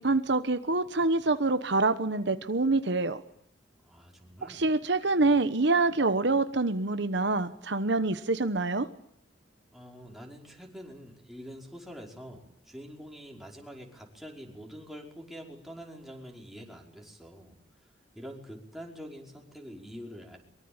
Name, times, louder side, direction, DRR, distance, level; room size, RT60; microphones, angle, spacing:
voice 1, 0.0-3.2 4.5-8.9, right 3 dB, 65° right, 10 dB, 1.1 m, -26 dB
voice 2, 3.8-4.6 9.7-17.6 18.2-20.4, equal, ahead, 0 dB, 5.2 m, -45 dB
24.0 x 23.5 x 8.9 m, 0.71 s
head